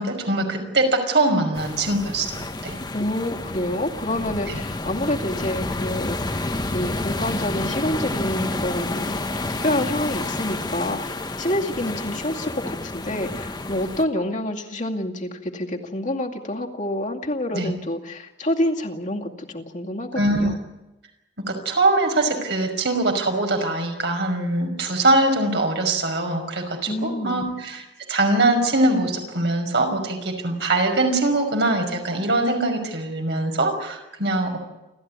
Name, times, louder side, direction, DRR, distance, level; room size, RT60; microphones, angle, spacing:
voice 1, 0.0-2.8 4.5-4.6 17.5-17.7 20.1-20.5 21.5-34.6, right 2 dB, 75° right, 3 dB, 5.6 m, -22 dB
sound 1, 1.6-14.0, left 2 dB, 25° left, 1.2 m, -30 dB
voice 2, 2.9-9.3 9.6-20.6 26.9-27.5, left 1 dB, 45° left, 1 dB, 2.3 m, -27 dB
29.0 x 13.5 x 9.7 m, 1.0 s
head